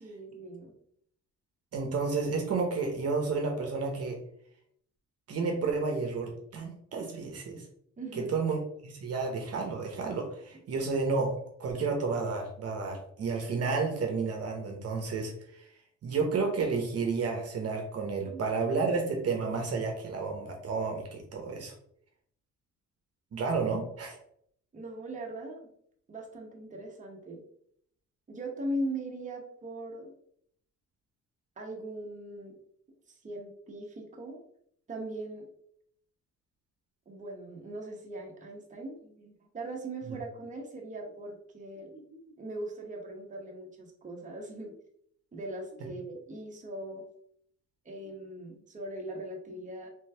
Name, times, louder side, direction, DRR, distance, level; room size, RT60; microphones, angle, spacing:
voice 1, 0.0-0.7 8.0-8.4 18.3-18.4 24.7-25.7 26.1-27.4 28.3-30.1 31.6-32.6 33.2-34.4 34.9-35.5 37.1-44.8 45.3-47.0 47.8-49.9, right 1 dB, 25° right, 0 dB, 0.9 m, -40 dB
voice 2, 1.7-4.2 5.3-7.6 8.3-15.7 16.0-21.7 23.3-24.2, right 4 dB, 55° right, 2 dB, 0.9 m, -31 dB
3.4 x 3.1 x 3.3 m, 0.68 s
cardioid pair, 90°, 30 cm